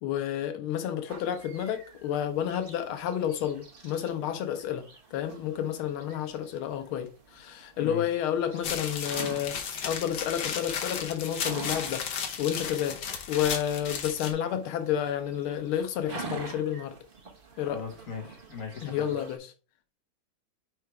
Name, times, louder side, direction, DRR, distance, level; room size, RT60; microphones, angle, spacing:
voice 1, 0.0-12.1 12.4-13.0 13.3-16.9 17.6-17.8 18.8-19.5, left 10 dB, 90° left, 1.6 m, -30 dB
sound 1, 1.1-19.4, right 4 dB, 35° right, 1.1 m, -47 dB
voice 2, 7.8-8.1 17.6-19.1, left 5 dB, 45° left, 1.5 m, -39 dB
sound 2, 8.6-14.3, left 7 dB, 65° left, 1.5 m, -34 dB
4.7 x 4.5 x 4.6 m
omnidirectional pair, 2.3 m